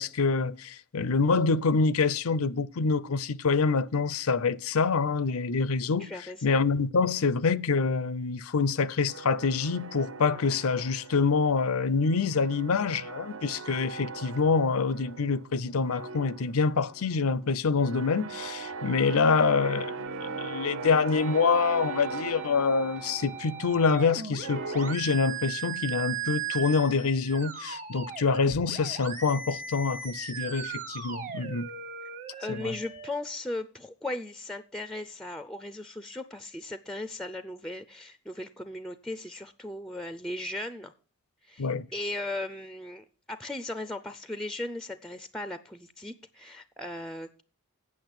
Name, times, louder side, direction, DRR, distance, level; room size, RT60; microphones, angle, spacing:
voice 1, 0.0-6.1 6.4-31.7 32.5-32.7 41.6-41.9, left 4 dB, 85° left, 0.6 m, -26 dB
voice 2, 6.0-6.6 32.4-40.9 41.4-47.4, left 1 dB, 5° left, 0.4 m, -37 dB
sound 1, 9.1-11.6 11.9-15.5 15.8-24.9, right 5 dB, 70° right, 0.7 m, -40 dB
sound 2, 20.1-33.1, right 7 dB, 35° right, 1.1 m, -38 dB
8.6 x 6.3 x 8.0 m
head